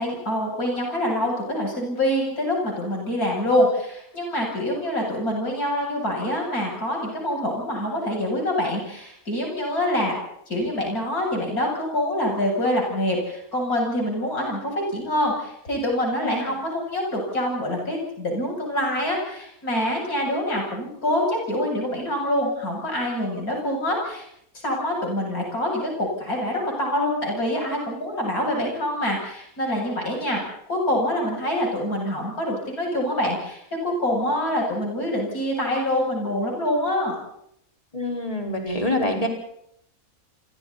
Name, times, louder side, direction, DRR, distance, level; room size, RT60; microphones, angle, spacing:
voice 1, 0.0-10.1 10.5-24.2 24.6-30.4 30.7-37.2, left 1 dB, 85° left, -1 dB, 8.5 m, -25 dB
voice 2, 37.9-39.3, left 1 dB, 25° left, 1 dB, 5.0 m, -25 dB
29.5 x 25.0 x 4.2 m, 0.73 s
omnidirectional pair, 1.5 m